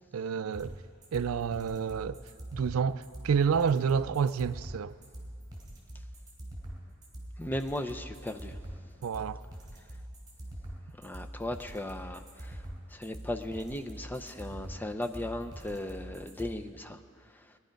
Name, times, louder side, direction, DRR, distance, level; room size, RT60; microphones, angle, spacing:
voice 1, 0.1-0.8 1.1-2.2 2.5-4.9 9.0-9.4, right 6 dB, 85° right, 0.4 m, -29 dB
sound 1, 0.5-16.5, right 1 dB, 20° right, 3.3 m, -44 dB
voice 2, 7.4-8.6 11.0-17.6, left 1 dB, 10° left, 0.5 m, -37 dB
20.0 x 11.5 x 5.2 m
head